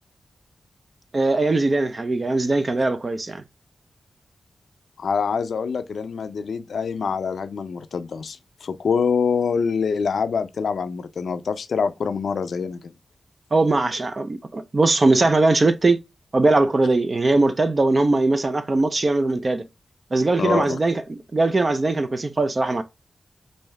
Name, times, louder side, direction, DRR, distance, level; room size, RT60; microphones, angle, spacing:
voice 1, 1.1-3.4 13.5-16.0 16.3-19.6 20.1-22.8, right 2 dB, 40° right, 0.4 m, -20 dB
voice 2, 5.0-12.9 20.4-20.8, left 5 dB, 80° left, 0.4 m, -25 dB
3.4 x 2.6 x 3.1 m
wide cardioid pair, 90°, 0 cm